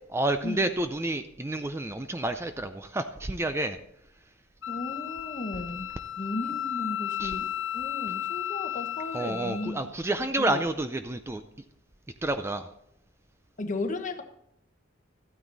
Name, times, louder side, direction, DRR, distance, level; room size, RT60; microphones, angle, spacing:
voice 1, 0.1-3.8 7.2-7.3 9.1-11.4 12.2-12.7, right 2 dB, 15° right, 9 dB, 0.4 m, -29 dB
Wind instrument woodwind instrument, 4.6-9.8, left 11 dB, 65° left, 1.0 m, -34 dB
voice 2, 4.7-5.9 6.2-7.5 7.7-9.8 10.4-10.6 13.6-14.2, left 2 dB, 40° left, 7 dB, 1.1 m, -35 dB
13.5 x 9.3 x 4.0 m, 0.77 s
head